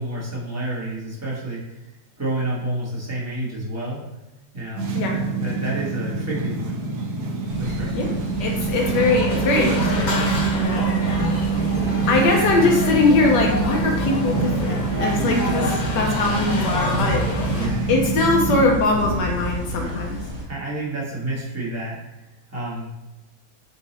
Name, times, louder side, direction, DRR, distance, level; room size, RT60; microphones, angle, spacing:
voice 1, 0.0-1.8 2.2-4.0 4.5-6.9 7.6-8.0 17.5-17.9 19.8-20.1 20.4-22.0 22.5-22.9, right 1 dB, 10° right, -7 dB, 0.9 m, -29 dB
sound 1, 4.8-18.6, right 4 dB, 70° right, 1.2 m, -25 dB
sound 2, 7.4-20.4, equal, 45° right, 0.3 m, -32 dB
voice 2, 8.4-10.9 12.1-17.5 17.9-20.2, left 3 dB, 80° left, 0 dB, 1.3 m, -21 dB
sound 3, 8.8-17.7, left 1 dB, 50° left, 0.5 m, -29 dB
4.0 x 2.9 x 4.0 m, 1.0 s
omnidirectional pair, 1.9 m